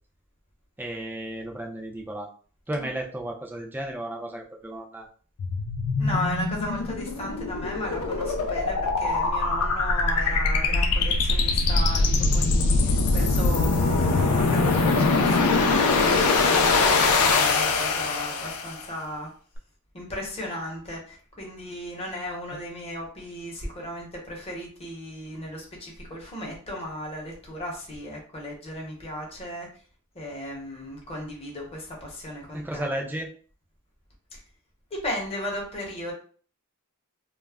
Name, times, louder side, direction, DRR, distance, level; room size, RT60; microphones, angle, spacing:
voice 1, 0.8-2.3 2.7-5.1 32.5-33.3, right 1 dB, 10° right, 1 dB, 0.4 m, -33 dB
sound 1, 5.4-18.8, left 3 dB, 85° left, 0.4 m, -23 dB
voice 2, 6.0-19.3 19.9-29.7 30.1-32.9 34.3-34.4 34.9-36.1, equal, 30° left, -2 dB, 0.8 m, -35 dB
2.2 x 2.0 x 3.4 m, 0.43 s
head